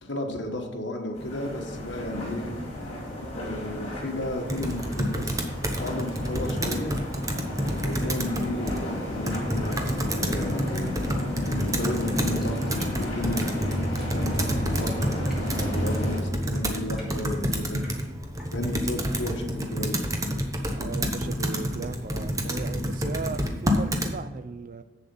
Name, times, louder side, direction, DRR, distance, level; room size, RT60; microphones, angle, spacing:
voice 1, 0.0-2.5 3.4-5.5 5.8-6.9 7.7-11.0 11.4-13.8 14.1-15.1 15.7-17.8 18.5-20.0, left 1 dB, 65° left, 1.4 m, -33 dB
sound 1, 1.1-16.2, left 1 dB, 35° left, 2.9 m, -33 dB
Computer keyboard, 4.5-24.1, equal, 20° right, 0.9 m, -29 dB
sound 2, 11.7-19.0, equal, ahead, 2.7 m, -51 dB
voice 2, 20.6-24.8, right 4 dB, 45° right, 0.4 m, -37 dB
7.6 x 7.1 x 5.4 m
head